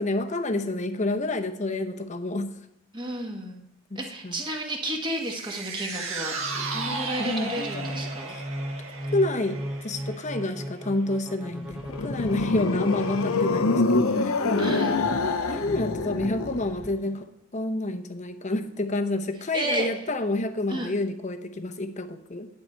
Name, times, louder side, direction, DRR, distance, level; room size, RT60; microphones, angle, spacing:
voice 1, 0.0-2.5 3.9-4.3 7.2-8.4 9.1-14.7 15.5-22.5, left 2 dB, 35° left, 7 dB, 0.8 m, -29 dB
voice 2, 2.9-3.6 3.9-8.4 14.6-15.0 19.5-19.9 20.7-21.0, right 1 dB, 20° right, 1 dB, 1.5 m, -32 dB
sound 1, 5.1-11.6 11.9-12.0, right 3 dB, 70° right, 1.7 m, -35 dB
sound 2, 6.4-14.3, equal, 5° right, 0.4 m, -37 dB
sound 3, 11.6-16.9, left 3 dB, 75° left, 0.7 m, -26 dB
10.0 x 8.8 x 4.5 m, 0.77 s
head